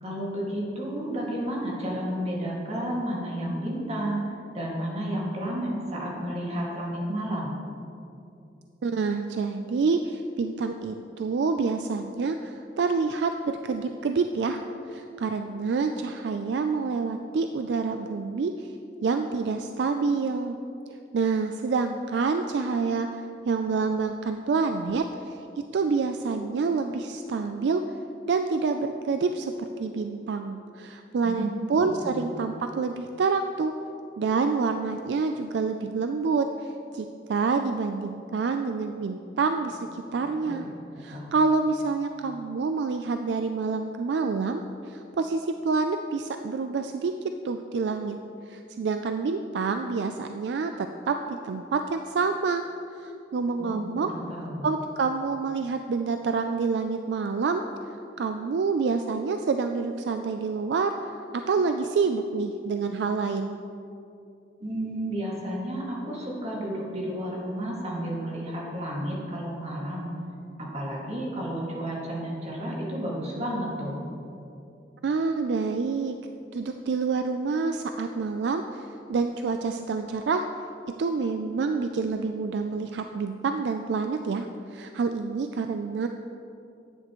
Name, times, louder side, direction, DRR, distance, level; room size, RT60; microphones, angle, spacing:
voice 1, 0.0-7.6 31.2-31.7 32.0-32.2 40.0-40.7 41.1-41.4 53.6-54.7 64.6-70.1 70.6-74.0, right 1 dB, 40° right, -4 dB, 2.0 m, -32 dB
voice 2, 8.8-14.6 14.9-18.7 19.0-20.6 21.1-25.4 25.7-27.8 28.3-33.7 34.2-40.7 41.0-48.2 48.5-52.6 52.9-54.1 54.6-57.6 58.2-61.1 61.5-63.6 75.0-76.2 76.5-80.4 81.0-86.1, right 4 dB, 70° right, 7 dB, 0.4 m, -27 dB
11.0 x 9.1 x 3.1 m, 2.7 s
head